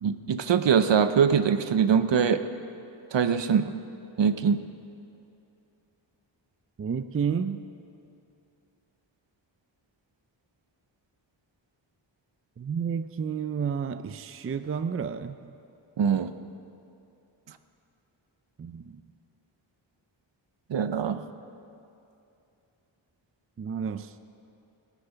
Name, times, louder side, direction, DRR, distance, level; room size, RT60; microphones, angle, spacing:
voice 1, 0.0-2.4 3.1-3.7 4.2-4.6 16.0-16.3 20.7-21.2, right 7 dB, 65° right, 10 dB, 0.7 m, -23 dB
voice 2, 6.8-7.6 12.6-15.5 18.6-19.0 23.6-24.2, right 6 dB, 30° right, 11 dB, 0.4 m, -31 dB
18.5 x 10.0 x 5.7 m, 2.7 s
wide cardioid pair, 85°, 47 cm